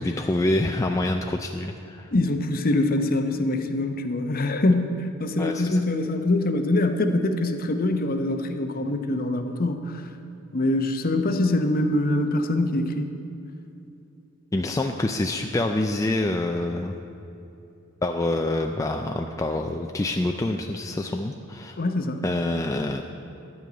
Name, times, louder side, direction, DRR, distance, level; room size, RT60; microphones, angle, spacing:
voice 1, 0.0-2.1 5.4-5.8 14.5-16.9 18.0-21.8 22.2-23.0, left 2 dB, 15° left, 4 dB, 0.3 m, -26 dB
voice 2, 2.1-10.0 10.5-13.1 21.8-22.2, left 2 dB, 45° left, 7 dB, 0.7 m, -24 dB
12.0 x 5.4 x 8.4 m, 2.8 s
head